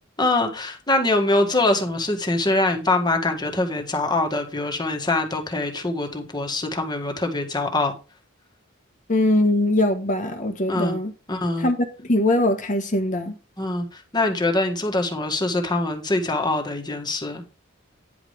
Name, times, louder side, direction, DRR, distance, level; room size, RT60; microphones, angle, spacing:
voice 1, 0.2-7.9 10.7-11.0 11.3-11.7 13.6-17.4, left 2 dB, 20° left, 1.8 m, -23 dB
voice 2, 9.1-11.1 11.6-13.3, left 1 dB, 40° left, 1.3 m, -21 dB
10.0 x 5.0 x 5.0 m
head